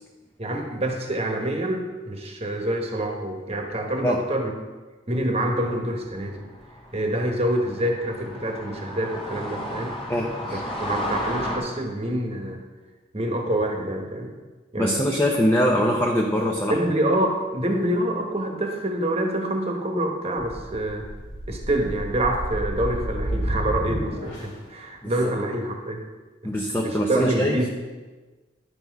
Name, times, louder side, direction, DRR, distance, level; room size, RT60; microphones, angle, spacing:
voice 1, 0.4-4.5 5.1-6.5 6.9-10.0 10.5-12.6 13.1-14.3 14.7-15.0 16.7-21.1 21.5-26.0 26.4-26.5 26.8-27.7, right 1 dB, 30° right, 2 dB, 1.2 m, -26 dB
sound 1, 6.0-11.6, equal, 30° left, 1.5 m, -33 dB
voice 2, 10.1-10.6 14.8-16.8 25.0-25.3 26.4-27.6, equal, 15° left, -1 dB, 0.7 m, -23 dB
sound 2, 20.4-24.7, equal, 85° left, 3.3 m, -31 dB
10.5 x 6.1 x 4.6 m, 1.3 s
head